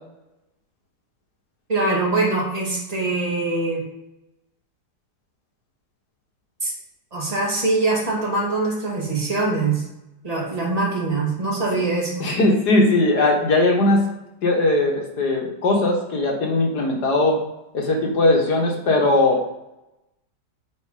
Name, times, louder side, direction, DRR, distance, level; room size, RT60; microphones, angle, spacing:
voice 1, 1.7-3.8 6.6-6.7 7.1-9.8 10.2-12.3, right 3 dB, 20° right, -3 dB, 2.4 m, -23 dB
voice 2, 12.2-14.0 14.4-17.4 17.7-19.4, left 2 dB, 70° left, 1 dB, 2.0 m, -19 dB
8.1 x 5.0 x 5.0 m, 0.90 s
omnidirectional pair, 1.8 m